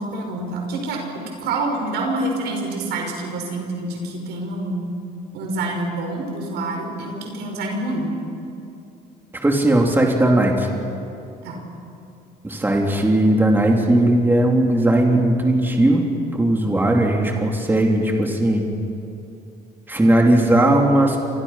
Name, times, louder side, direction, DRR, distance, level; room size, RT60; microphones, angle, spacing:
voice 1, 0.0-4.9 5.3-8.1 11.4-11.6, right 2 dB, 80° right, 2 dB, 6.0 m, -27 dB
voice 2, 9.3-10.7 12.4-18.6 19.9-21.2, right 1 dB, 10° right, 0 dB, 3.3 m, -18 dB
29.5 x 25.5 x 5.8 m, 2.6 s
cardioid pair, 110°, 17 cm